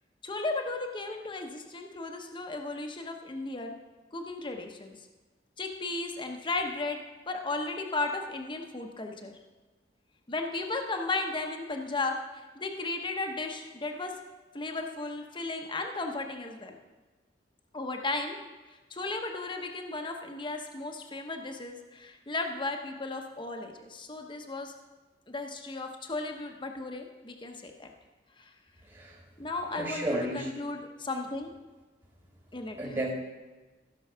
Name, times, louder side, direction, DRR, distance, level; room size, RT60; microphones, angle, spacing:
voice 1, 0.2-3.7 4.1-5.0 5.6-9.4 10.3-14.1 14.5-16.8 17.7-18.4 18.7-24.7 25.3-27.9 28.4-28.5 29.4-31.5 32.5-32.8, left 3 dB, 30° left, 3 dB, 1.0 m, -35 dB
voice 2, 28.8-29.3 29.7-30.5 32.8-33.1, right 1 dB, 25° right, -1 dB, 1.8 m, -33 dB
15.0 x 6.2 x 5.6 m, 1.2 s
head